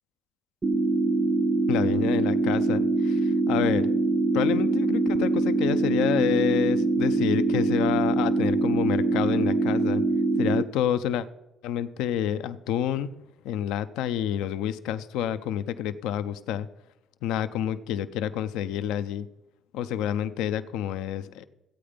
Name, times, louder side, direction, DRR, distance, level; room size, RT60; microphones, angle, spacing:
sound 1, 0.6-10.6, right 3 dB, 30° right, 0.5 m, -24 dB
voice 1, 1.7-3.9 4.3-10.0 10.4-11.3 11.6-13.1 13.4-16.7 17.2-19.3 19.7-21.5, left 10 dB, 85° left, 12 dB, 0.5 m, -28 dB
14.5 x 8.7 x 5.1 m, 0.93 s
cardioid pair, 85°, 0 cm